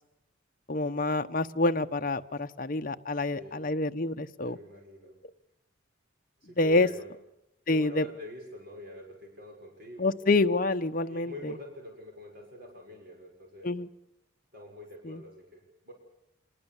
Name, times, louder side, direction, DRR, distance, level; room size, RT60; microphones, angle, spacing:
voice 1, 0.7-4.6 6.6-6.9 7.7-8.0 10.0-11.5 13.6-13.9 15.0-15.2, left 2 dB, 45° left, 8 dB, 0.9 m, -27 dB
voice 2, 3.1-3.7 4.4-5.1 6.4-7.1 7.7-10.1 11.1-13.7 14.5-15.9, left 1 dB, 50° right, 1 dB, 6.0 m, -45 dB
27.0 x 20.0 x 7.2 m, 0.89 s
head